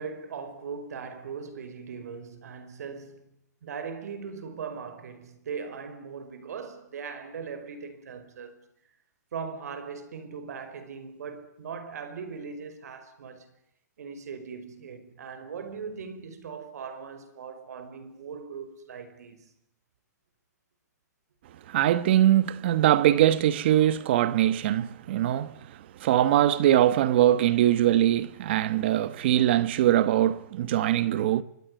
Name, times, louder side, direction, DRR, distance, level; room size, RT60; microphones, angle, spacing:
voice 1, 0.0-3.3 3.6-8.7 9.3-13.5 14.0-19.5, right 6 dB, 65° right, 5.0 m, -39 dB
voice 2, 21.7-25.6 26.0-31.4, right 12 dB, 35° right, 1.1 m, -22 dB
24.5 x 21.0 x 9.6 m
hypercardioid pair, 175°, 10 cm